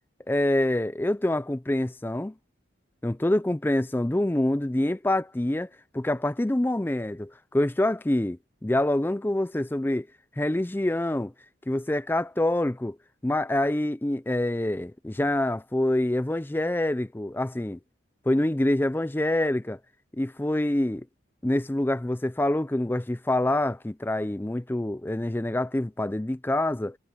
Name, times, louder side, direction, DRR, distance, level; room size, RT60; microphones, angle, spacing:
voice 1, 0.3-2.3 3.0-5.7 5.9-10.1 10.4-11.3 11.7-13.0 13.2-17.8 18.3-19.8 20.2-21.1 21.4-27.0, left 1 dB, 10° left, 0.4 m, -26 dB
head